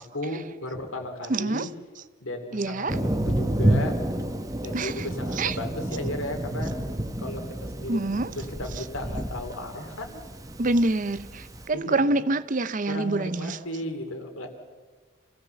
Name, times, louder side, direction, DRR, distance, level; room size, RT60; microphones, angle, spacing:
voice 1, 0.1-1.7 2.2-4.0 4.6-6.7 7.2-8.0 8.3-10.3 11.7-12.2 12.9-14.5, left 1 dB, 90° left, 2.9 m, -35 dB
voice 2, 1.3-1.7 2.5-2.9 4.7-5.1 5.4-5.6 7.9-8.3 10.6-13.6, right 2 dB, 40° right, 0.6 m, -26 dB
Thunder, 2.9-11.6, right 1 dB, 15° right, 1.1 m, -29 dB
27.0 x 16.5 x 7.0 m
head